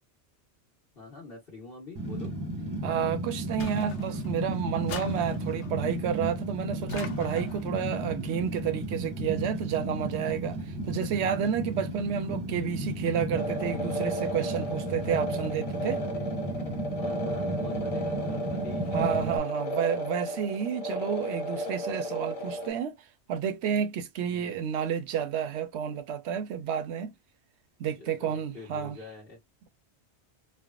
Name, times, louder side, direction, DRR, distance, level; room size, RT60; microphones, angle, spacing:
voice 1, 0.9-2.3 12.6-12.9 15.9-19.0 24.2-24.5 27.9-29.4, left 3 dB, 55° left, 1.3 m, -46 dB
Fire, 1.9-19.4, right 1 dB, 20° right, 0.8 m, -34 dB
voice 2, 2.8-16.0 18.9-23.0 23.3-27.1 27.8-29.0, right 8 dB, 75° right, 0.8 m, -30 dB
sound 1, 3.6-4.4 4.9-5.8 6.9-7.7, left 7 dB, 85° left, 0.9 m, -42 dB
sound 2, 13.3-22.7, equal, 40° left, 0.6 m, -33 dB
3.4 x 2.1 x 2.3 m
omnidirectional pair, 1.2 m